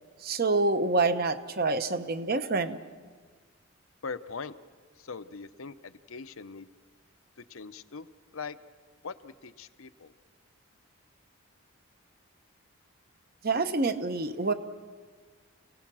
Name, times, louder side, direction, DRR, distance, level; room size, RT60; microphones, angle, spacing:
voice 1, 0.2-2.8 13.4-14.5, right 3 dB, 40° right, 10 dB, 0.9 m, -27 dB
voice 2, 4.0-4.6 5.0-6.7 7.5-8.1 8.3-8.6 9.0-10.1, left 5 dB, 65° left, 13 dB, 0.7 m, -41 dB
28.5 x 17.5 x 6.2 m, 1.5 s
head